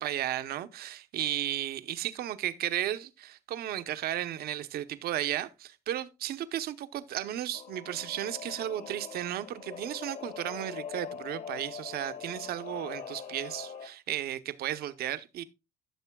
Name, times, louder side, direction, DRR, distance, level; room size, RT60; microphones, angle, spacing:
voice 1, 0.0-15.4, right 12 dB, 65° right, 0.7 m, -34 dB
Singing / Musical instrument, 7.5-13.9, left 7 dB, 55° left, 1.4 m, -42 dB
14.5 x 6.6 x 2.2 m
cardioid pair, 110°, 17 cm